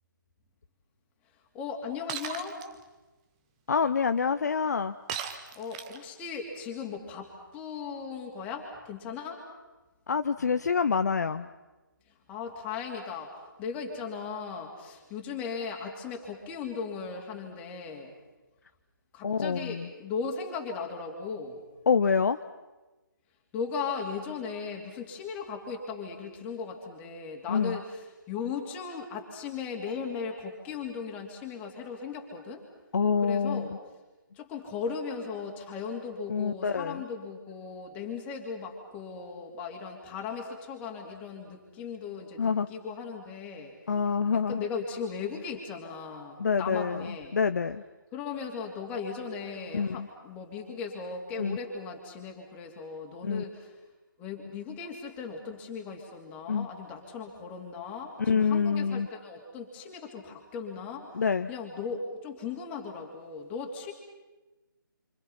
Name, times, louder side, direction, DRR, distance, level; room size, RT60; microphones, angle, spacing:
voice 1, 1.5-2.6 5.5-9.4 12.3-18.1 19.1-21.6 23.5-32.6 33.2-33.7 34.4-43.7 44.3-47.4 48.1-53.7 54.2-61.2 61.5-63.9, left 5 dB, 10° left, 1 dB, 2.9 m, -37 dB
Shatter, 2.1-2.7 5.1-6.1, right 8 dB, 20° right, 1.1 m, -36 dB
voice 2, 3.7-5.0 10.1-11.5 19.2-19.9 21.9-22.4 27.5-27.8 32.9-33.8 36.3-37.0 42.4-42.7 43.9-44.7 46.4-47.1 47.3-47.8 49.7-50.1 51.4-51.6 53.2-53.4 56.5-56.7 58.3-59.1 61.1-61.5, left 6 dB, 50° left, 10 dB, 0.8 m, -26 dB
27.5 x 26.5 x 5.7 m, 1.1 s
figure-of-eight pair, 155°, 11 cm